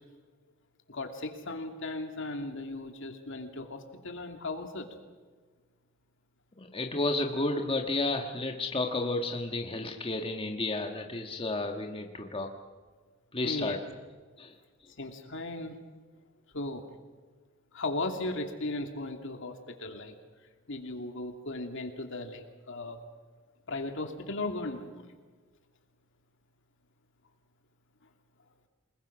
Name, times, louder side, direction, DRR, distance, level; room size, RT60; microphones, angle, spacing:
voice 1, 0.9-4.9 13.4-13.8 15.0-15.8 16.5-16.8 17.7-20.1 20.7-23.0 23.7-25.1, left 2 dB, 65° left, 5 dB, 2.7 m, -36 dB
voice 2, 6.6-12.5 13.3-13.8 14.4-14.5, left 2 dB, 25° left, 4 dB, 1.5 m, -32 dB
28.0 x 20.5 x 6.2 m, 1.5 s
head